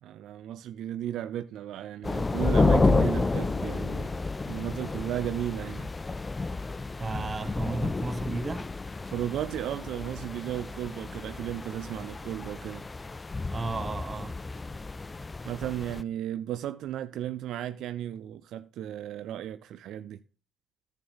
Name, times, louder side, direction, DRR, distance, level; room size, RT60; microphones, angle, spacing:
voice 1, 0.0-5.9 9.0-12.8 15.4-20.2, right 11 dB, 70° right, 0.4 m, -35 dB
sound 1, 2.0-16.0, left 3 dB, 25° left, 0.4 m, -30 dB
voice 2, 7.0-8.7 13.5-14.4, right 3 dB, 30° right, 1.2 m, -34 dB
11.0 x 9.3 x 3.5 m
supercardioid pair, 65°, 0 cm